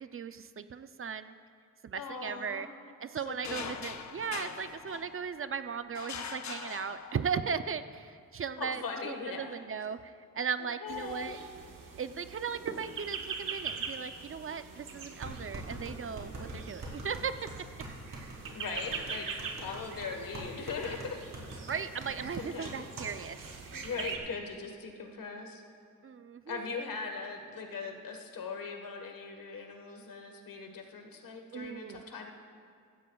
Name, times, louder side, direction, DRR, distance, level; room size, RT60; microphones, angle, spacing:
voice 1, 0.0-1.3 1.8-2.7 3.0-11.4 12.0-17.4 21.7-23.4 23.6-23.8 26.0-26.8 31.5-32.0, right 6 dB, 40° right, 11 dB, 0.4 m, -37 dB
voice 2, 1.9-2.7 3.3-3.7 8.6-9.6 10.6-11.3 18.5-21.2 22.4-23.1 23.7-25.6 26.5-32.3, left 4 dB, 80° left, 3 dB, 1.4 m, -40 dB
sound 1, 3.4-5.4 6.0-7.5, left 6 dB, 55° left, 0.7 m, -42 dB
sound 2, 10.9-24.2, right 5 dB, 80° right, 1.2 m, -43 dB
sound 3, 15.2-23.1 23.4-23.5 23.8-24.2, right 2 dB, 55° right, 3.2 m, -43 dB
16.0 x 14.5 x 2.3 m, 2.2 s
cardioid pair, 95°, 33 cm